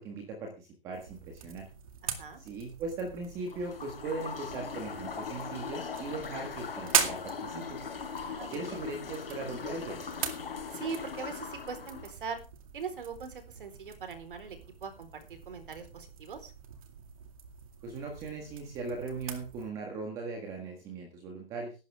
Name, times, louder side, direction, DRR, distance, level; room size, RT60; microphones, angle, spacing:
voice 1, 0.0-1.7 2.4-7.8 8.5-10.0 17.8-21.7, right 3 dB, 10° right, 2 dB, 1.6 m, -39 dB
sound 1, 0.9-19.7, right 8 dB, 35° right, 2.2 m, -40 dB
voice 2, 2.0-2.4 8.2-8.9 10.7-12.4 12.7-16.5, right 5 dB, 60° right, 8 dB, 4.2 m, -41 dB
sound 2, 3.4-12.1, left 6 dB, 70° left, 4.5 m, -40 dB
16.0 x 12.0 x 3.5 m, 0.31 s
hypercardioid pair, 175°, 29 cm